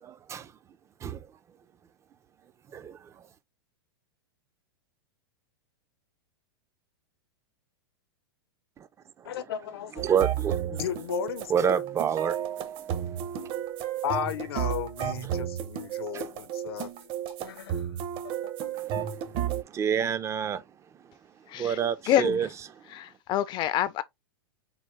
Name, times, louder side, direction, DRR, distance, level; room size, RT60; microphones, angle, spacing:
voice 1, 0.0-0.5 1.0-1.3 2.7-3.1 8.8-8.9 9.2-9.3 10.0-10.8 11.5-12.7 16.1-16.3 18.7-20.6 21.5-22.5, right 8 dB, 20° right, 0.5 m, -29 dB
voice 2, 9.2-10.0 10.7-11.8 14.0-17.9 18.2-18.5, left 11 dB, 70° left, 0.9 m, -35 dB
sound 1, 10.0-19.6, right 10 dB, 40° right, 0.9 m, -33 dB
voice 3, 21.5-21.8 22.1-22.5 22.9-24.0, left 12 dB, 35° left, 0.6 m, -27 dB
4.2 x 3.8 x 3.1 m
hypercardioid pair, 115°, 13 cm